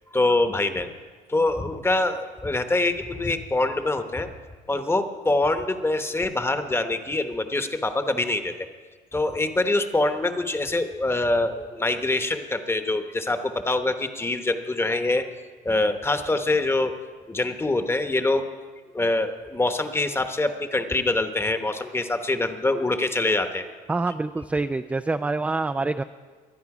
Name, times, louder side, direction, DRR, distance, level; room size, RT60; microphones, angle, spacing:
voice 1, 0.1-0.9 1.3-4.3 4.7-8.5 9.1-15.3 15.6-16.9 17.3-18.5 18.9-23.6, left 2 dB, 15° left, 8 dB, 1.1 m, -24 dB
voice 2, 23.9-26.0, right 3 dB, 10° right, 9 dB, 0.3 m, -26 dB
23.0 x 9.4 x 4.9 m, 1.5 s
cardioid pair, 110°, 17 cm